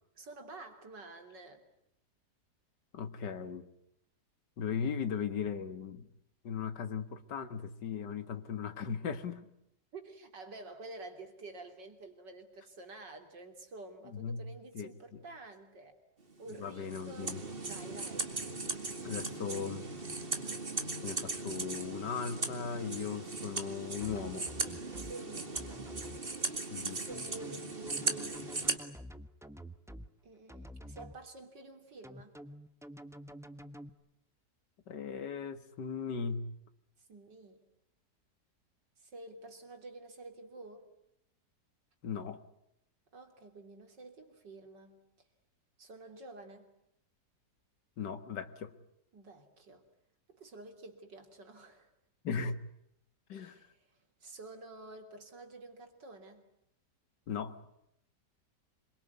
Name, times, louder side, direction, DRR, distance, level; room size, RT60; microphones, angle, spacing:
voice 1, 0.2-1.6 9.9-16.0 16.4-17.4 17.7-18.3 25.0-25.9 26.9-28.4 30.2-32.3 37.1-37.6 39.0-40.9 43.1-45.0 45.8-46.7 49.1-49.9 50.3-51.9 53.3-53.7 54.2-56.5, right 2 dB, 75° right, 5 dB, 3.9 m, -49 dB
voice 2, 2.9-3.7 4.6-6.1 6.4-9.5 14.1-14.4 14.7-15.2 16.6-17.4 19.0-19.9 21.0-24.5 26.7-27.0 34.9-36.5 42.0-42.4 48.0-48.7 52.2-52.6 53.3-53.6 57.3-57.6, left 6 dB, 75° left, 11 dB, 2.2 m, -38 dB
sound 1, 16.5-28.8, right 3 dB, 30° right, 2.4 m, -38 dB
sound 2, 24.0-25.1 25.5-26.2 27.1-30.1 30.5-31.1 32.0-33.9, equal, ahead, 0.9 m, -48 dB
26.5 x 23.0 x 9.5 m, 0.79 s
omnidirectional pair, 1.9 m